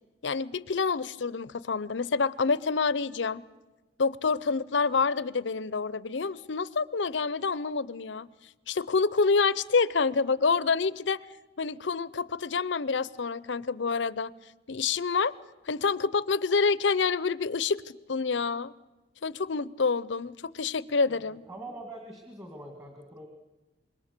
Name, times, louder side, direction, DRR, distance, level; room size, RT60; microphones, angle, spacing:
voice 1, 0.2-3.4 4.0-8.3 8.7-11.2 11.6-14.3 14.7-15.3 15.7-18.7 19.2-21.4, left 4 dB, 80° left, 0.7 m, -27 dB
voice 2, 21.1-23.3, right 1 dB, 20° right, 2.3 m, -44 dB
26.5 x 22.0 x 6.8 m
head